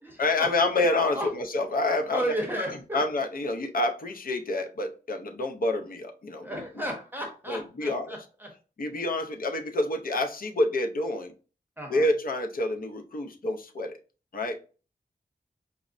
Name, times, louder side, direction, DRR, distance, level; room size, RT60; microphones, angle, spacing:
voice 1, 0.2-2.3 2.7-6.6 7.5-8.2 8.8-11.3 11.9-14.0 14.3-14.6, left 2 dB, 65° left, 5 dB, 0.5 m, -28 dB
voice 2, 2.1-2.7 6.4-8.5 11.8-12.1, equal, 10° right, 1 dB, 0.7 m, -33 dB
4.7 x 2.1 x 2.5 m, 0.36 s
wide cardioid pair, 95°, 16 cm